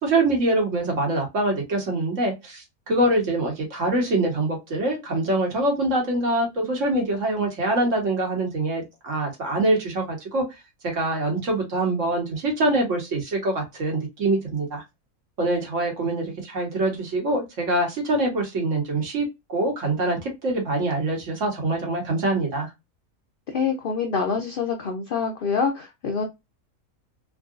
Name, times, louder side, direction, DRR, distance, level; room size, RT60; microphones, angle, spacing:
voice 1, 0.0-10.4 10.9-14.8 15.4-22.7, right 2 dB, 60° right, 1.4 m, -24 dB
voice 2, 23.5-26.2, left 5 dB, 65° left, 0.5 m, -26 dB
3.6 x 2.3 x 2.4 m
omnidirectional pair, 1.5 m